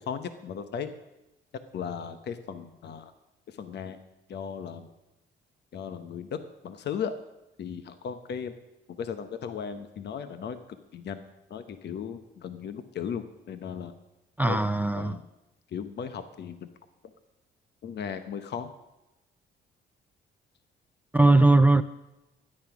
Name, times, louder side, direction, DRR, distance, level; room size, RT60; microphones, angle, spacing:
voice 1, 0.1-0.9 1.7-3.1 3.6-4.0 4.3-4.9 5.7-6.4 6.6-7.1 7.6-8.5 9.0-10.6 10.9-11.2 11.5-13.9 14.5-14.6 15.0-15.2 15.7-16.7 17.8-18.7, left 7 dB, 60° left, 0.9 m, -36 dB
voice 2, 14.4-15.2 21.1-21.8, right 2 dB, 10° right, 0.4 m, -19 dB
13.0 x 9.8 x 6.0 m
cardioid pair, 90°, 20 cm